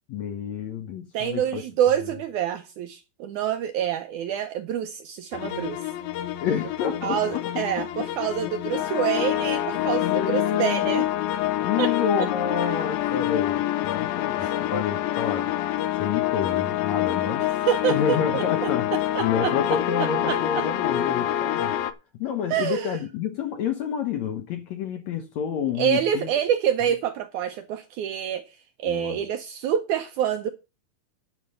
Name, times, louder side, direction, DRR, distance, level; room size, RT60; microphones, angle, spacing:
voice 1, 0.1-1.6 6.4-7.4 9.7-10.9 11.6-15.6 16.0-17.5 17.9-18.9 19.2-21.7 22.2-26.3 26.8-26.9 28.8-29.2, left 7 dB, 70° left, 1.7 m, -29 dB
voice 2, 1.1-5.8 7.0-11.1 11.8-11.9 12.2-12.3 14.4-14.5 17.4-19.5 20.0-20.7 22.5-23.0 25.8-30.5, right 10 dB, 80° right, 1.8 m, -27 dB
sound 1, 5.3-21.9, left 13 dB, 90° left, 2.6 m, -26 dB
11.0 x 5.3 x 6.5 m
omnidirectional pair, 4.2 m